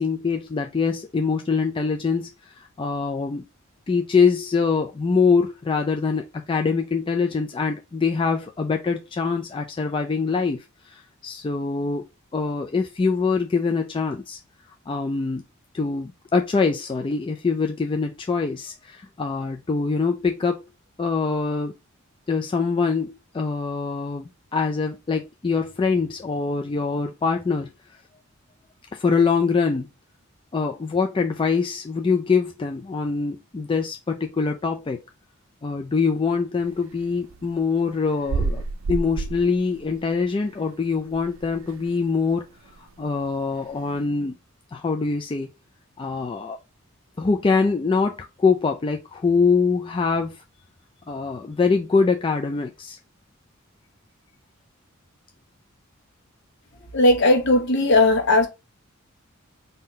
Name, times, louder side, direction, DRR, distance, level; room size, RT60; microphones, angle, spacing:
voice 1, 0.0-2.3 2.6-3.4 3.9-12.0 12.3-14.4 14.9-15.4 15.7-20.6 21.0-21.7 22.3-27.7 28.9-29.9 30.5-35.0 35.6-38.6 38.9-42.5 42.8-44.4 44.7-45.5 46.0-46.6 47.2-50.4 51.1-53.0, left 4 dB, 25° left, 0.3 m, -24 dB
sound 1, 36.6-41.9 42.3-42.4 42.7-44.0, right 4 dB, 75° right, 0.5 m, -30 dB
voice 2, 56.9-58.5, left 2 dB, 60° left, 1.1 m, -17 dB
3.8 x 2.7 x 4.2 m
head